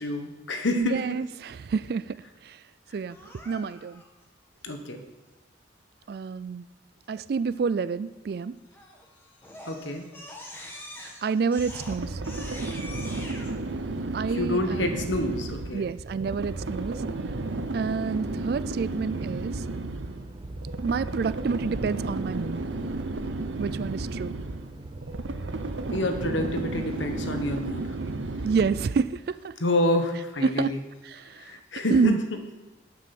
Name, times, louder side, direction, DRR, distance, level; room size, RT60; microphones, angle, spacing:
voice 1, 0.0-1.0 4.6-5.0 9.6-10.0 14.3-15.8 25.9-27.9 29.6-30.8 31.4-32.2, left 1 dB, 80° left, 5 dB, 1.3 m, -28 dB
voice 2, 0.8-2.2 2.4-2.6 2.9-4.0 6.1-6.7 7.1-8.5 11.2-12.2 14.1-15.1 15.7-17.0 17.7-19.6 20.8-22.6 23.6-24.4 28.4-29.5 30.4-30.7 31.0-31.5 31.9-32.2, right 5 dB, 55° right, 16 dB, 0.3 m, -28 dB
Crying sobbing, 3.1-4.0 8.7-9.0 9.4-13.5, left 1 dB, 10° left, 1.4 m, -43 dB
sound 1, 11.6-29.2, right 2 dB, 80° right, 0.7 m, -33 dB
sound 2, 18.2-27.3, right 1 dB, 25° right, 0.7 m, -44 dB
11.5 x 6.0 x 6.0 m, 1.2 s
head